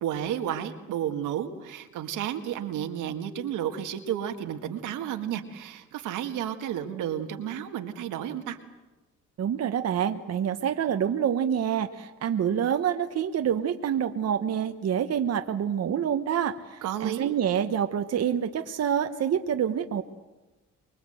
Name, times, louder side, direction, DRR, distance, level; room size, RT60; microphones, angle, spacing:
voice 1, 0.0-8.6 16.8-17.3, right 10 dB, 90° right, 6 dB, 1.9 m, -32 dB
voice 2, 9.4-20.0, right 8 dB, 55° right, 7 dB, 1.1 m, -27 dB
24.5 x 22.0 x 7.9 m, 1.1 s
cardioid pair, 90°, 30 cm